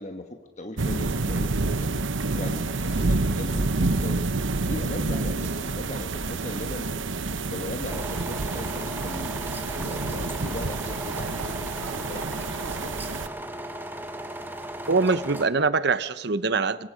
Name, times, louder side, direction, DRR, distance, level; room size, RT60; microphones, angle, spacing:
voice 1, 0.0-1.9 2.3-4.3 4.7-6.9 7.5-13.0, left 1 dB, 35° left, 5 dB, 1.3 m, -38 dB
sound 1, 0.8-13.3, right 3 dB, 75° right, 1.0 m, -28 dB
sound 2, 7.9-15.5, right 1 dB, 10° right, 1.5 m, -36 dB
voice 2, 14.9-16.9, right 4 dB, 55° right, 15 dB, 0.8 m, -23 dB
25.0 x 23.0 x 5.1 m, 1.1 s
head